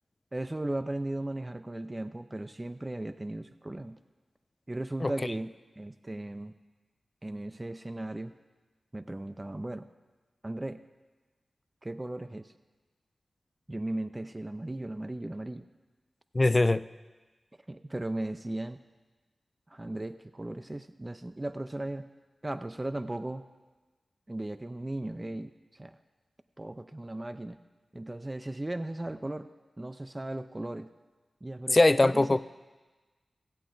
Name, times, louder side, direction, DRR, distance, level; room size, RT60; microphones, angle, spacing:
voice 1, 0.3-4.0 4.7-6.5 7.2-8.3 8.9-9.9 10.4-10.8 11.8-12.5 13.7-15.7 17.7-18.8 19.7-22.1 22.4-23.4 24.3-26.0 26.6-27.6 27.9-29.5 29.8-30.9 31.4-32.4, right 1 dB, 25° right, 10 dB, 0.5 m, -37 dB
voice 2, 16.3-16.8 31.7-32.4, left 2 dB, 35° left, 15 dB, 0.3 m, -21 dB
16.0 x 8.5 x 3.9 m, 1.3 s
cardioid pair, 45°, 0 cm